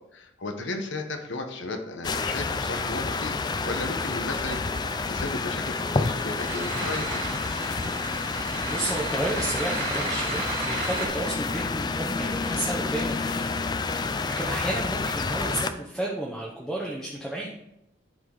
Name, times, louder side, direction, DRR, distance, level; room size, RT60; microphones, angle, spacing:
voice 1, 0.1-3.4 3.6-7.2, left 2 dB, 85° left, 5 dB, 1.1 m, -34 dB
sound 1, 2.0-15.7, left 4 dB, 20° left, 0.3 m, -29 dB
sound 2, 4.5-11.1, right 3 dB, 45° right, 2.7 m, -34 dB
voice 2, 8.1-13.5 13.9-17.5, right 1 dB, ahead, -4 dB, 0.8 m, -32 dB
11.0 x 4.8 x 3.9 m, 0.87 s
head